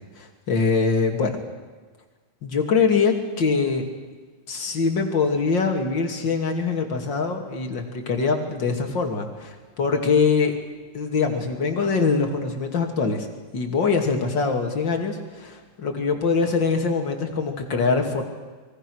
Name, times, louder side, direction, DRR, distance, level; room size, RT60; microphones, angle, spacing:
voice 1, 0.2-1.4 2.4-3.9 4.5-10.5 10.9-13.3 13.5-18.2, left 4 dB, 35° left, 4 dB, 2.8 m, -23 dB
26.5 x 23.0 x 6.4 m, 1.4 s
omnidirectional pair, 4.0 m